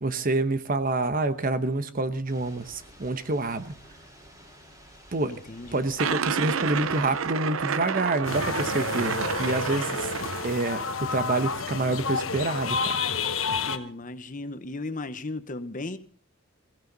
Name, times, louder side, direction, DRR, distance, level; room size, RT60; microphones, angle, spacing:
voice 1, 0.0-3.7 5.1-5.3 5.7-10.1 10.4-13.0, right 2 dB, 45° right, 1.0 m, -27 dB
Thunder / Rain, 2.2-7.2, equal, 20° right, 5.1 m, -51 dB
voice 2, 5.3-5.9 13.7-16.0, left 2 dB, 40° left, 1.0 m, -36 dB
sound 1, 6.0-10.9, right 6 dB, 90° right, 0.7 m, -30 dB
sound 2, 8.2-13.8, left 5 dB, 85° left, 1.1 m, -30 dB
22.5 x 15.5 x 4.0 m
head